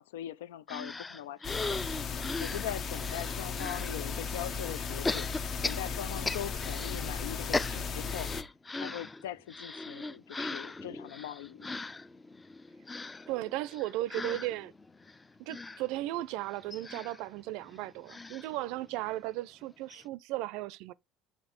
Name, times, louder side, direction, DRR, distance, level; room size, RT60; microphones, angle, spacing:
voice 1, 0.0-5.3 5.6-8.4 8.7-11.7, left 11 dB, 75° left, 0.4 m, -41 dB
sound 1, 0.7-4.0 5.0-7.0 7.3-19.2 19.6-19.7 19.9-20.0, left 3 dB, 20° left, 0.5 m, -39 dB
sound 2, 1.4-8.4, left 5 dB, 45° left, 0.8 m, -36 dB
voice 2, 13.3-14.7 15.4-20.9, right 16 dB, 60° right, 0.4 m, -36 dB
5.9 x 4.5 x 3.9 m
hypercardioid pair, 65°, 0 cm